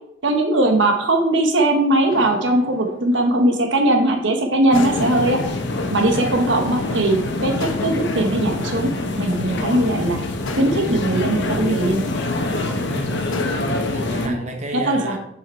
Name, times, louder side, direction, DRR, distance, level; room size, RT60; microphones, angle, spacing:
voice 1, 0.2-5.4 5.9-8.9 9.2-10.2 10.6-12.0 14.2-14.3 14.9-15.1, right 1 dB, 60° right, 3 dB, 1.1 m, -19 dB
sound 1, 2.1-4.1 4.7-7.0 7.6-9.9 10.5-12.6 13.3-14.2, left 2 dB, 90° left, 1.0 m, -36 dB
sound 2, 4.7-14.3, left 2 dB, 60° left, 1.0 m, -25 dB
voice 2, 12.9-15.2, right 1 dB, 35° right, 2 dB, 1.1 m, -32 dB
7.5 x 5.8 x 4.2 m, 0.75 s
head